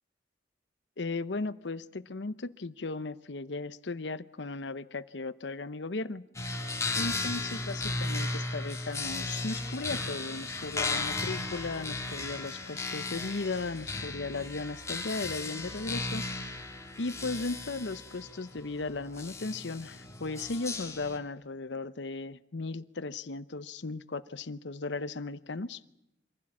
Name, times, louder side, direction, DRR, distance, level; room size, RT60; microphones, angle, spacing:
voice 1, 1.0-6.2 7.0-16.2 17.0-25.8, left 3 dB, 75° left, 14 dB, 0.9 m, -36 dB
sound 1, 6.3-21.2, left 3 dB, 15° left, 2.9 m, -36 dB
sound 2, 8.9-14.1, equal, 5° right, 2.6 m, -58 dB
25.5 x 16.0 x 8.6 m, 0.84 s
head